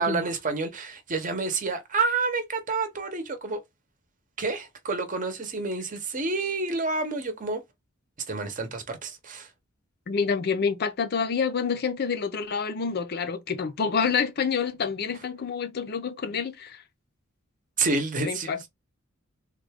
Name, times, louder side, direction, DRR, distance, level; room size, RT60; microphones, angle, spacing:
voice 1, 0.0-3.6 4.4-7.6 8.3-9.5 17.8-18.6, right 3 dB, 40° right, 0.8 m, -29 dB
voice 2, 10.1-16.8 18.2-18.7, left 6 dB, 50° left, 0.6 m, -28 dB
3.6 x 2.3 x 3.4 m
head